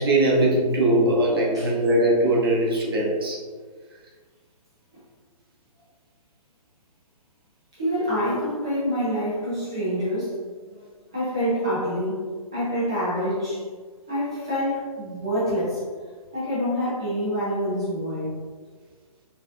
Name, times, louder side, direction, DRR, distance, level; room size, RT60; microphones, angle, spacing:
voice 1, 0.0-3.4, right 1 dB, 40° right, -4 dB, 0.7 m, -21 dB
voice 2, 7.8-10.4 10.7-10.8 11.1-13.6 14.1-15.8 16.3-18.3, equal, 10° right, -10 dB, 0.3 m, -26 dB
4.2 x 2.6 x 2.4 m, 1.6 s
hypercardioid pair, 175°, 19 cm